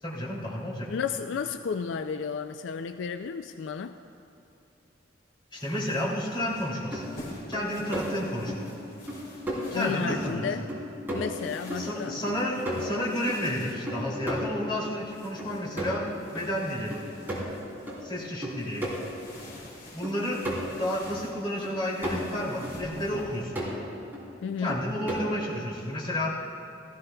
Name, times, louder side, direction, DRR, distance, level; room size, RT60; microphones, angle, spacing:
voice 1, 0.0-0.9 5.5-7.2 7.5-8.7 9.7-10.5 11.8-16.0 16.3-16.9 18.0-18.9 19.9-20.4 20.8-23.6 24.6-26.3, left 1 dB, 30° left, -6 dB, 2.7 m, -31 dB
voice 2, 0.9-4.0 9.7-10.6 11.1-12.2 24.4-24.8, left 6 dB, 80° left, 9 dB, 0.3 m, -32 dB
sound 1, 5.5-23.4, left 1 dB, 55° left, 3.1 m, -49 dB
sound 2, 6.5-6.6 6.9-7.1 7.5-8.1 8.5-8.6 9.1-9.2 9.5-9.6 10.1-10.4 10.7-11.4 11.7-13.4 13.9-15.0 15.4-16.1 16.3-16.5 16.9-18.0 18.4-19.0 19.4-19.5 20.0-21.2 21.6-22.3 22.6-22.8 23.2-23.7 24.1-24.2 24.7-25.4, equal, 10° right, 3.0 m, -34 dB
17.5 x 14.0 x 2.3 m, 2.9 s
head